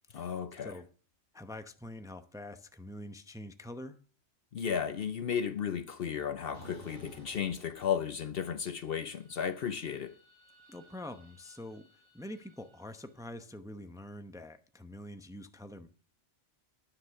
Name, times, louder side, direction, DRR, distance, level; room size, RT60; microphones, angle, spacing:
voice 1, 0.1-0.8 4.5-10.2, left 7 dB, 55° left, 0.8 m, -34 dB
voice 2, 1.3-4.0 10.7-11.8 12.1-15.9, left 1 dB, 5° right, 0.7 m, -45 dB
sound 1, 6.5-8.5 8.8-13.1, right 1 dB, 70° right, 4.7 m, -57 dB
10.0 x 9.9 x 5.8 m
omnidirectional pair, 1.2 m